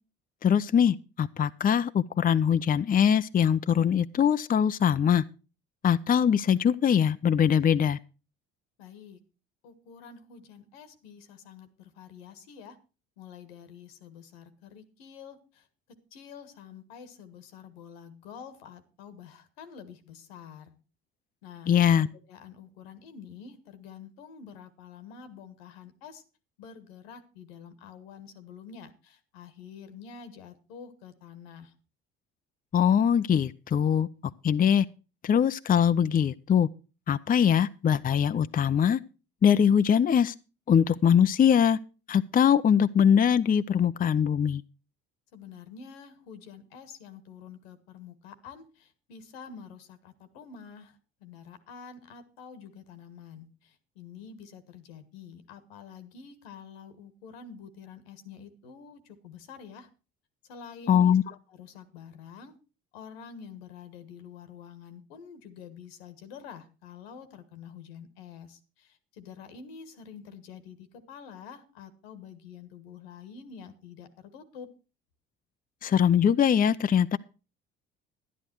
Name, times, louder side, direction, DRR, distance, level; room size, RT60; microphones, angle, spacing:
voice 1, 0.4-5.2 5.8-8.0 21.7-22.1 32.7-34.1 34.4-34.8 35.2-36.7 37.1-39.0 39.4-40.3 40.7-41.8 42.1-44.6 60.9-61.2 75.8-77.2, left 8 dB, 30° left, 0.6 m, -22 dB
voice 2, 8.8-9.2 9.6-12.8 13.2-15.7 16.1-20.7 21.4-26.2 26.6-31.7 45.3-59.9 60.5-62.5 62.9-74.7, left 6 dB, 85° left, 1.6 m, -47 dB
11.0 x 10.5 x 4.6 m
hypercardioid pair, 65°, 30 cm